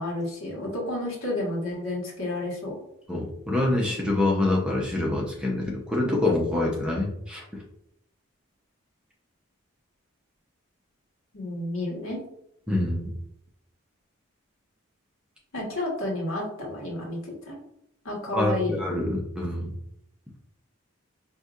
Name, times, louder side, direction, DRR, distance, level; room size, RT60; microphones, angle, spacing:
voice 1, 0.0-2.7 11.3-12.2 15.5-17.6 18.0-18.8, left 1 dB, 80° left, -3 dB, 1.4 m, -31 dB
voice 2, 3.1-7.4 12.7-13.1 18.3-19.7, left 2 dB, 5° right, -2 dB, 0.6 m, -26 dB
4.8 x 2.7 x 2.4 m, 0.76 s
head